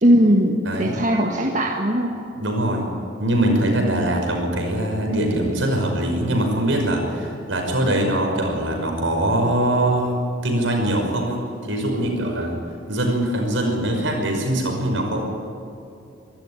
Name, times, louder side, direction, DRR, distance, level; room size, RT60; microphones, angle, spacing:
voice 1, 0.0-2.2, equal, 40° right, 0 dB, 1.7 m, -19 dB
voice 2, 0.7-1.0 2.4-2.8 3.2-10.2 10.4-11.4 11.7-12.6 12.9-15.2, right 1 dB, 70° right, 2 dB, 5.7 m, -22 dB
24.0 x 13.5 x 9.9 m, 2.7 s
head